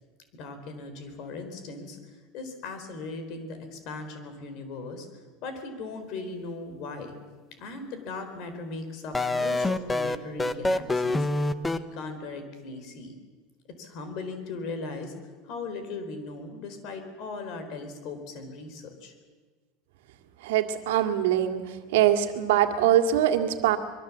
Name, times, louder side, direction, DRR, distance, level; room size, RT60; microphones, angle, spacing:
voice 1, 0.3-5.1 5.4-7.2 7.6-13.1 13.8-15.1 15.4-19.1, left 3 dB, 45° left, 8 dB, 4.4 m, -38 dB
sound 1, 9.1-11.8, left 2 dB, 10° left, 0.8 m, -25 dB
voice 2, 20.4-21.6 21.9-23.8, right 11 dB, 90° right, 7 dB, 2.1 m, -23 dB
25.0 x 22.5 x 7.5 m, 1.4 s
supercardioid pair, 165°, 0 cm